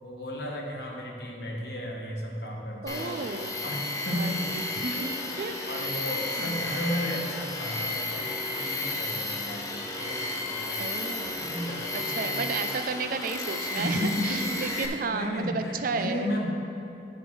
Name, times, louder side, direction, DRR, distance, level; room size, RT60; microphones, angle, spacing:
voice 1, 0.0-3.3 3.6-4.6 4.9-10.8 11.3-12.5 13.7-16.5, equal, 60° left, 0 dB, 1.3 m, -34 dB
voice 2, 2.8-3.6 4.1-5.1 5.4-6.0 6.4-6.7 10.8-11.6 11.9-16.5, right 4 dB, 50° right, 9 dB, 0.4 m, -33 dB
Tools, 2.9-14.9, left 2 dB, 20° left, 0.7 m, -33 dB
7.8 x 5.1 x 6.2 m, 2.8 s
head